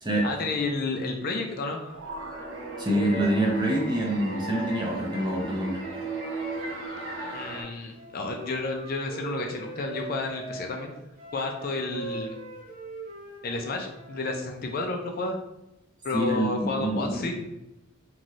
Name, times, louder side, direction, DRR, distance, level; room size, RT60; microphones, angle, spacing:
voice 1, 0.2-2.0 7.3-10.9 11.3-12.4 13.4-15.4 16.0-17.3, left 3 dB, 45° left, 2 dB, 0.4 m, -31 dB
sound 1, 1.9-7.6, right 3 dB, 60° right, 0.7 m, -35 dB
voice 2, 2.8-5.8 16.1-17.3, right 1 dB, 20° right, -1 dB, 0.5 m, -26 dB
Wind instrument woodwind instrument, 7.9-14.3, right 2 dB, 45° right, 1.0 m, -41 dB
2.6 x 2.5 x 3.0 m, 0.92 s
head